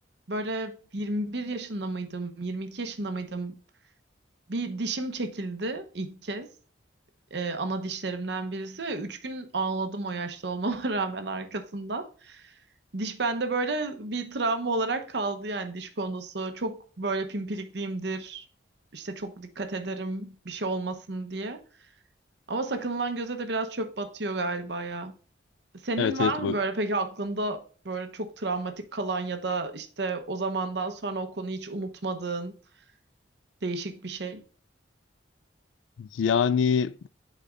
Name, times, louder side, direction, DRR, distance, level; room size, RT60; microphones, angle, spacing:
voice 1, 0.3-3.6 4.5-6.5 7.3-12.5 12.9-18.4 18.9-21.6 22.5-25.2 25.8-32.5 33.6-34.4, right 3 dB, 60° right, 0.8 m, -31 dB
voice 2, 26.0-26.6 36.0-37.1, left 7 dB, 80° left, 0.3 m, -25 dB
11.0 x 4.1 x 2.4 m
head